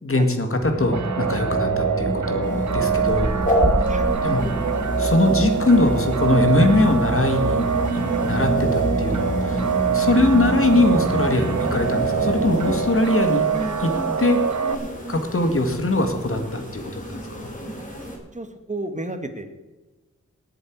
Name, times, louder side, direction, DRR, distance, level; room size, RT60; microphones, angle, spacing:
voice 1, 0.0-3.3 4.2-4.4 5.0-9.6 9.9-13.5 13.8-13.9 14.2-14.4 15.1-17.5, left 2 dB, 45° left, 6 dB, 2.0 m, -21 dB
sound 1, 0.6-12.9, right 2 dB, 10° left, 3.9 m, -28 dB
sound 2, 0.9-14.8, right 6 dB, 70° right, 0.9 m, -25 dB
sound 3, 2.4-18.2, equal, 25° left, 3.6 m, -31 dB
voice 2, 18.3-19.6, right 2 dB, 25° right, 7 dB, 1.7 m, -33 dB
18.5 x 7.9 x 4.8 m, 1.1 s
wide cardioid pair, 60°, 30 cm